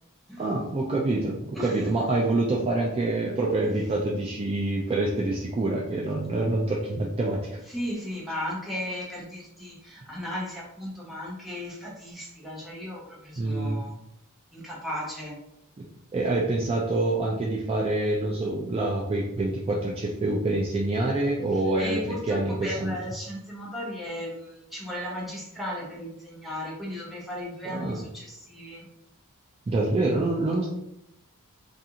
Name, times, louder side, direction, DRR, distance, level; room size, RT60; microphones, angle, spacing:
voice 1, 0.4-7.6 13.4-13.9 15.8-15.9 16.1-23.0 27.7-28.0 29.7-30.7, right 2 dB, 25° right, -3 dB, 0.3 m, -26 dB
voice 2, 1.5-1.9 7.7-13.9 14.5-15.4 21.8-28.9, left 1 dB, ahead, -6 dB, 0.7 m, -36 dB
2.4 x 2.4 x 2.8 m, 0.80 s
head